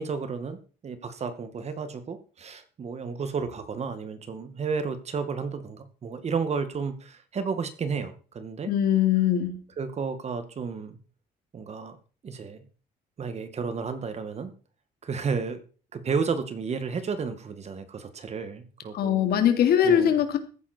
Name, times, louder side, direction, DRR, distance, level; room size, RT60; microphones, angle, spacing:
voice 1, 0.0-8.7 9.8-11.0 11.5-12.0 12.2-12.6 13.2-14.5 15.0-15.6 15.9-19.3 19.8-20.1, right 5 dB, 40° right, 10 dB, 2.1 m, -32 dB
voice 2, 8.6-9.6 18.9-20.4, left 9 dB, 65° left, 7 dB, 2.8 m, -21 dB
14.5 x 10.0 x 4.5 m, 0.38 s
cardioid pair, 110°, 17 cm